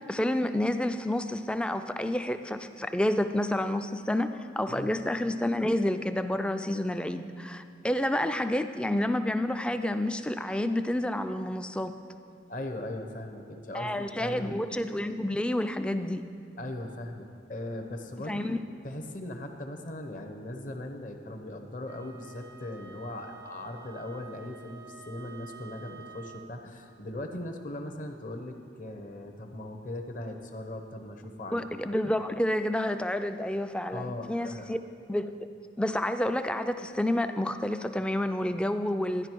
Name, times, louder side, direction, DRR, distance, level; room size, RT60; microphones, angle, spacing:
voice 1, 0.1-12.0 13.7-16.3 18.3-18.6 31.5-34.8 35.1-35.3 35.8-39.3, left 1 dB, 5° left, 9 dB, 0.3 m, -29 dB
voice 2, 12.5-14.7 16.6-18.5 18.8-31.7 33.9-34.7, left 1 dB, 45° left, 5 dB, 0.9 m, -39 dB
Wind instrument woodwind instrument, 21.9-26.6, right 6 dB, 70° right, 0.5 m, -49 dB
12.5 x 10.0 x 4.6 m, 2.4 s
head